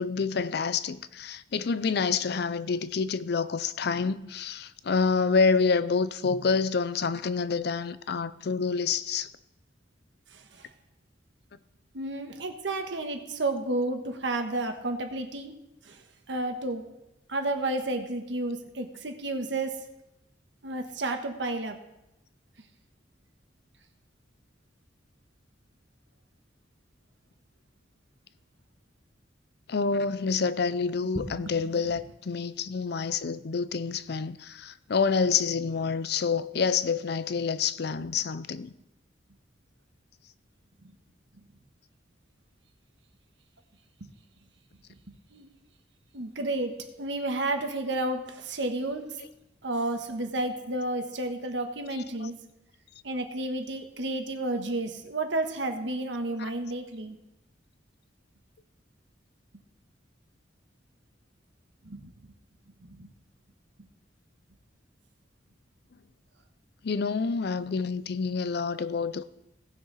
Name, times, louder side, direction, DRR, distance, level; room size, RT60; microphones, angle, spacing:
voice 1, 0.0-9.3 29.7-38.7 52.2-52.3 66.8-69.2, left 5 dB, 60° left, 0.5 m, -28 dB
voice 2, 10.3-10.7 11.9-15.5 15.8-16.8 17.3-19.9 20.6-21.8 31.1-31.8 40.8-40.9 44.0-44.1 45.3-45.5 46.1-49.3 49.6-52.3 53.0-57.2 61.8-62.3 62.8-63.1, right 2 dB, 75° right, 1.4 m, -32 dB
18.0 x 6.3 x 4.1 m
head